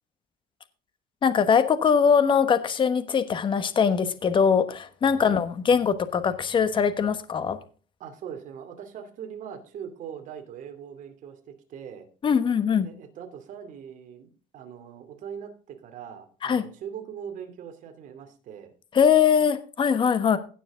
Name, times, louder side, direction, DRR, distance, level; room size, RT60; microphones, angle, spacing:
voice 1, 1.2-7.6 12.2-12.9 16.4-16.6 18.9-20.4, left 7 dB, 30° left, 1.2 m, -22 dB
voice 2, 5.1-5.4 8.0-12.1 12.8-18.7, right 8 dB, 55° right, 2.6 m, -41 dB
16.5 x 7.0 x 3.7 m
cardioid pair, 130°, 16 cm